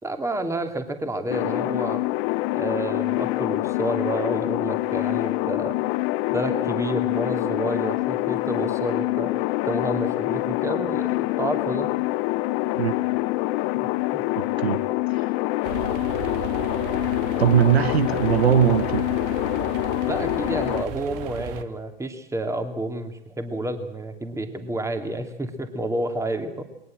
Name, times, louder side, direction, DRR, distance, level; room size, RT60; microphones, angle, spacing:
voice 1, 0.0-2.0 2.5-5.8 6.3-9.3 9.7-11.9 14.1-14.2 20.1-26.6, right 1 dB, 10° right, 7 dB, 2.7 m, -29 dB
sound 1, 1.3-20.8, left 19 dB, 45° left, 0.9 m, -25 dB
voice 2, 14.4-14.8 17.4-19.0, right 10 dB, 85° right, 14 dB, 1.2 m, -20 dB
sound 2, 15.6-21.6, right 10 dB, 50° right, 1.8 m, -35 dB
21.5 x 19.0 x 7.7 m, 0.85 s
hypercardioid pair, 105°, 31 cm